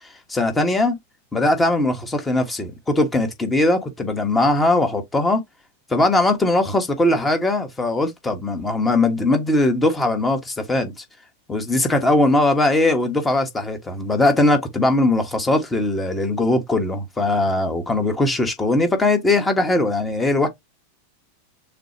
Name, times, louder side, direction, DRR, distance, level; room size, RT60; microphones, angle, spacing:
voice 1, 0.0-1.0 1.3-5.4 5.9-11.0 11.5-20.5, left 2 dB, 10° left, 1.4 m, -20 dB
6.6 x 2.4 x 3.0 m
figure-of-eight pair, 90°, 0 cm